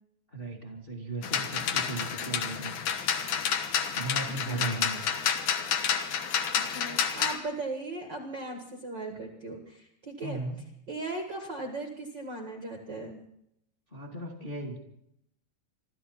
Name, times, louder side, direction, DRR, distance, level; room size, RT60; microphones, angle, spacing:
voice 1, 0.3-2.8 3.9-5.0 10.2-10.6 13.9-14.8, right 2 dB, 20° left, 2 dB, 1.4 m, -36 dB
sound 1, 1.2-7.4, left 8 dB, 65° left, 2.1 m, -29 dB
voice 2, 4.3-4.9 6.6-10.4 10.9-13.2, right 2 dB, 85° right, 3 dB, 0.9 m, -38 dB
25.5 x 13.5 x 4.2 m, 0.74 s
omnidirectional pair, 5.2 m